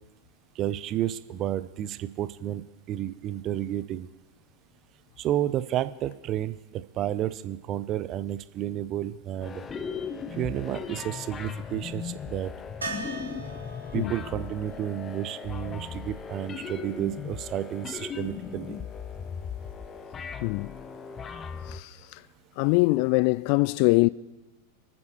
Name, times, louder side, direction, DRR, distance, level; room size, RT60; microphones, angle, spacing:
voice 1, 0.6-4.1 5.2-9.6 10.3-12.5 13.9-18.8, right 12 dB, 35° right, 0.6 m, -31 dB
sound 1, 9.4-21.8, left 6 dB, 20° left, 0.7 m, -38 dB
sound 2, 12.8-16.7 19.3-19.4 19.7-19.8, right 2 dB, 75° right, 2.3 m, -41 dB
voice 2, 20.4-20.7 21.7-21.9 22.6-24.1, left 26 dB, 45° left, 0.3 m, -22 dB
28.5 x 9.6 x 3.1 m
figure-of-eight pair, 90°, 0 cm